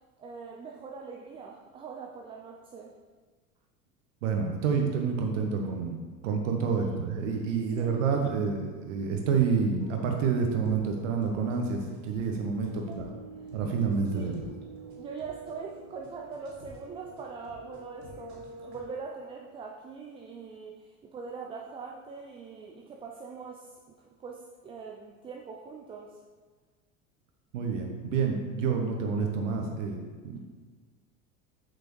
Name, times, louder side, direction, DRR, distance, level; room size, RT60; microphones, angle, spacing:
voice 1, 0.2-2.9 6.7-7.0 7.7-8.0 12.9-13.0 14.1-14.4 15.0-23.7 24.2-26.2, right 5 dB, 15° right, 0 dB, 0.4 m, -42 dB
voice 2, 4.2-6.0 6.2-13.0 13.5-14.3 27.5-30.4, right 5 dB, 60° right, 2 dB, 1.1 m, -28 dB
sound 1, 9.8-18.9, right 2 dB, 40° right, 2.3 m, -47 dB
7.7 x 6.7 x 3.2 m, 1.4 s
figure-of-eight pair, 70°, 43 cm